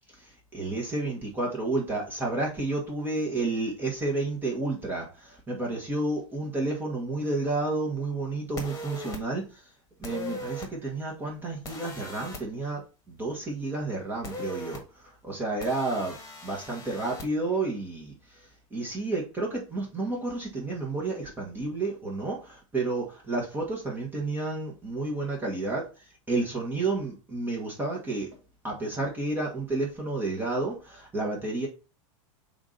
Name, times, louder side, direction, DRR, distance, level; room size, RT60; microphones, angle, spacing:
voice 1, 0.2-9.6 10.0-12.8 13.1-16.2 16.4-18.4 18.7-25.9 26.3-28.3 28.6-31.7, right 2 dB, 10° right, -2 dB, 1.5 m, -31 dB
sound 1, 8.6-9.2 10.0-10.7 11.6-12.4 14.2-14.8 15.6-17.3, left 2 dB, 20° left, 1.6 m, -39 dB
7.0 x 2.8 x 5.1 m, 0.33 s
supercardioid pair, 145°, 17 cm